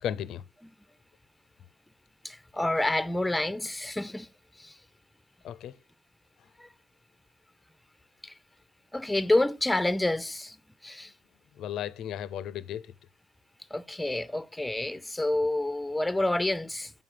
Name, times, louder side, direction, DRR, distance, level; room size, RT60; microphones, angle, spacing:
voice 1, 0.0-0.4 5.4-5.8 11.6-12.9, left 10 dB, 80° left, 0.5 m, -35 dB
voice 2, 2.2-4.3 4.6-4.8 6.6-6.7 8.2-8.3 8.9-10.6 10.8-11.1 13.7-16.9, left 1 dB, 10° left, 0.6 m, -28 dB
7.6 x 5.4 x 6.6 m
cardioid pair, 90°, 0 cm